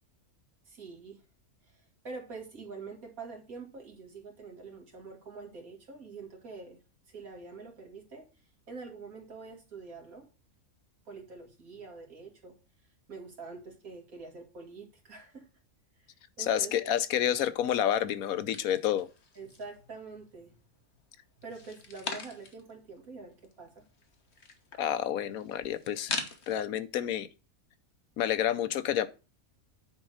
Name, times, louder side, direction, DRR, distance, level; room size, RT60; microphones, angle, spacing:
voice 1, 0.7-1.2 1.6-6.8 7.1-8.3 8.7-10.3 11.0-12.6 13.1-15.5 16.0-16.7 19.4-20.5 21.4-23.8, right 4 dB, 75° right, 2.7 m, -46 dB
voice 2, 16.4-19.1 24.8-26.1 26.5-27.3 28.2-29.1, left 10 dB, 80° left, 1.2 m, -29 dB
sound 1, 18.5-19.8 20.2-20.9 21.4-22.7 23.0-23.1 23.3-26.6, left 4 dB, 50° left, 1.5 m, -41 dB
9.4 x 3.8 x 6.3 m
omnidirectional pair, 1.5 m